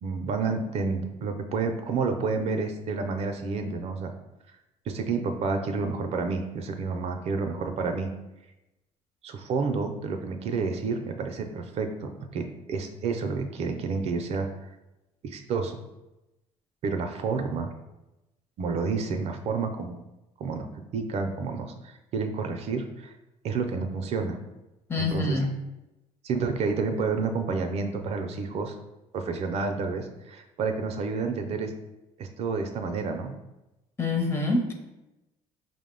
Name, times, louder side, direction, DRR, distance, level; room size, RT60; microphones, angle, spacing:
voice 1, 0.0-4.1 4.9-8.1 9.2-14.5 15.2-15.8 16.8-17.7 18.6-20.0 20.4-23.1 23.4-24.4 25.0-25.4 26.2-28.8 29.1-31.7 32.2-33.3, right 4 dB, 50° right, 6 dB, 0.4 m, -30 dB
voice 2, 24.9-25.6 34.0-34.7, left 2 dB, 15° left, 2 dB, 0.6 m, -26 dB
4.8 x 2.0 x 3.6 m, 0.97 s
cardioid pair, 110°, 14 cm